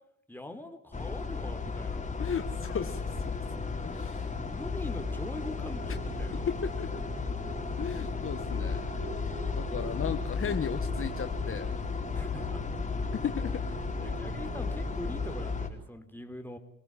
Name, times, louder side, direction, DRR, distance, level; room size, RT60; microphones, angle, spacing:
voice 1, 0.3-2.1 4.3-6.5 12.1-12.6 14.0-16.6, left 1 dB, 5° left, 6 dB, 4.3 m, -43 dB
sound 1, 0.9-15.7, left 4 dB, 25° left, 5.1 m, -34 dB
voice 2, 2.2-3.0 3.8-4.3 6.5-6.9 7.8-8.9 9.5-11.7 13.1-13.6, left 7 dB, 45° left, 8 dB, 1.6 m, -35 dB
sound 2, 4.7-15.7, right 3 dB, 50° right, 5.6 m, -44 dB
29.5 x 18.5 x 7.7 m, 0.72 s
cardioid pair, 90°, 30 cm